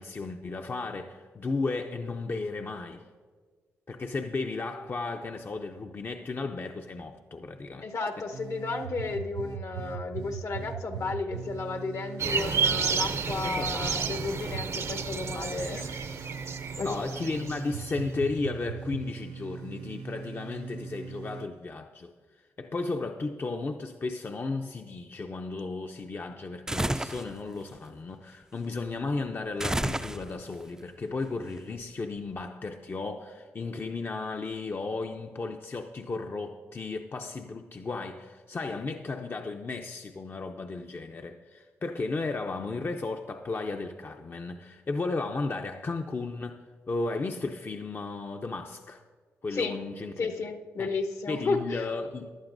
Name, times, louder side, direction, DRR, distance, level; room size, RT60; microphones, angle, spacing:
voice 1, 0.0-3.0 3.9-7.9 13.4-14.0 16.8-22.1 22.6-46.6 46.9-49.0 49.4-50.2 50.8-50.9 51.3-52.3, left 3 dB, 40° left, 0.6 m, -34 dB
voice 2, 7.8-15.9 16.8-17.0 49.5-49.8 50.2-51.8, left 4 dB, 65° left, 1.0 m, -33 dB
sound 1, 8.3-21.5, right 7 dB, 90° right, 0.4 m, -40 dB
sound 2, 12.2-17.9, right 5 dB, 55° right, 0.7 m, -31 dB
sound 3, 26.7-27.3 29.6-30.5, right 1 dB, 10° right, 0.4 m, -30 dB
15.0 x 11.0 x 2.6 m
supercardioid pair, 50°, 6 cm